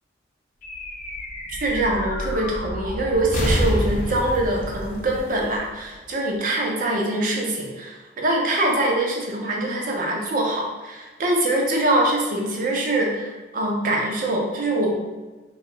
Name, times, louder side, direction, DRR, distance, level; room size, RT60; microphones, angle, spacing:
sound 1, 0.6-6.3, equal, 45° left, 0.5 m, -28 dB
voice 1, 1.6-15.0, right 1 dB, 50° right, -1 dB, 0.6 m, -23 dB
2.8 x 2.3 x 3.1 m, 1.2 s
head